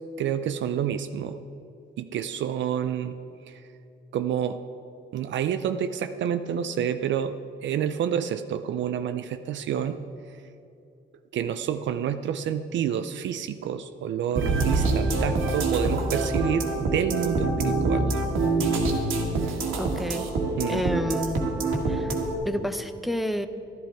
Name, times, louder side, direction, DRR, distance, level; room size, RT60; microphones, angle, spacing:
voice 1, 0.2-1.4 2.0-3.2 3.5-3.7 4.1-4.6 5.1-10.0 10.3-10.4 11.3-18.2 20.6-20.9, right 9 dB, 70° right, 9 dB, 0.5 m, -28 dB
sound 1, 14.4-22.4, right 3 dB, 85° right, 1.7 m, -25 dB
voice 2, 19.8-20.3 20.7-21.5 21.9-22.2 22.4-23.5, equal, ahead, 10 dB, 0.7 m, -29 dB
12.0 x 11.5 x 4.5 m, 2.7 s
cardioid pair, 90°, 20 cm